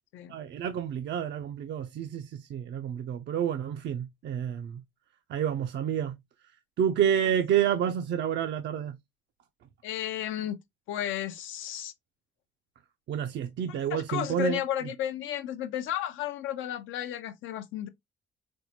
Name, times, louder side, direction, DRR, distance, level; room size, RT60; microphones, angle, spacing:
voice 1, 0.3-4.8 5.3-6.2 6.8-9.0 13.1-14.6, right 9 dB, 65° right, 0.4 m, -29 dB
voice 2, 9.8-10.6 10.9-11.9 13.9-17.9, left 11 dB, 85° left, 0.5 m, -33 dB
4.3 x 2.1 x 2.8 m
cardioid pair, 90°, 20 cm